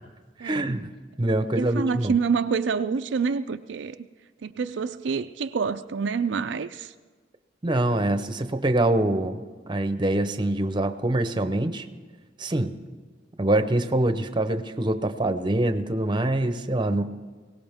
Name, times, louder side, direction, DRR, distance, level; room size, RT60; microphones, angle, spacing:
voice 1, 0.4-0.9 1.2-2.2 7.6-9.4 9.7-11.9 12.4-12.8 13.4-17.0, right 1 dB, 25° right, 9 dB, 0.8 m, -24 dB
voice 2, 1.6-4.0 4.4-6.9, right 5 dB, 70° right, 8 dB, 0.4 m, -27 dB
22.0 x 17.5 x 3.5 m, 1.4 s
head